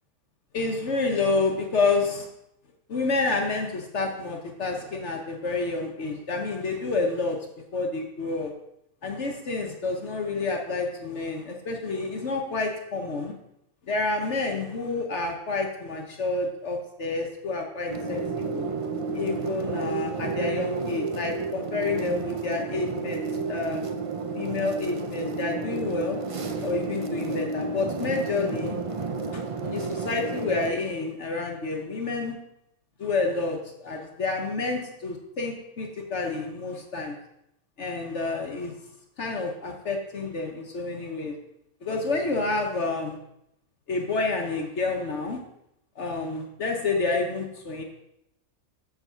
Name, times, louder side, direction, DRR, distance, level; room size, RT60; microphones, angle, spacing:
voice 1, 0.5-2.3 2.9-7.4 7.7-8.5 9.0-13.3 13.8-18.7 19.1-23.2 23.5-23.8 24.3-26.2 26.6-28.8 29.3-32.3 33.0-37.1 37.8-38.7 39.2-41.3 41.8-43.2 43.9-45.4 46.0-47.8, left 3 dB, 55° left, 2 dB, 1.2 m, -29 dB
sound 1, 17.9-30.7, right 4 dB, 50° right, 0.3 m, -31 dB
7.3 x 4.7 x 6.8 m, 0.81 s
omnidirectional pair, 1.5 m